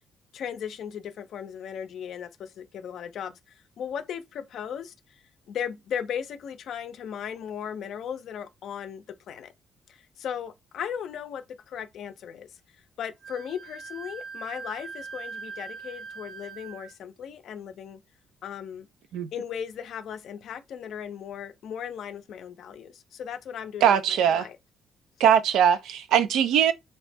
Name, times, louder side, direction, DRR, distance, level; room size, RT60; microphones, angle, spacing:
voice 1, 0.3-9.5 9.9-12.6 13.0-18.0 18.4-18.9 19.3-24.6, left 8 dB, 70° left, 0.4 m, -37 dB
Wind instrument woodwind instrument, 13.2-16.9, right 5 dB, 55° right, 1.0 m, -41 dB
voice 2, 23.8-24.5 25.2-26.7, right 9 dB, 85° right, 0.4 m, -21 dB
2.7 x 2.1 x 3.3 m
cardioid pair, 90°, 0 cm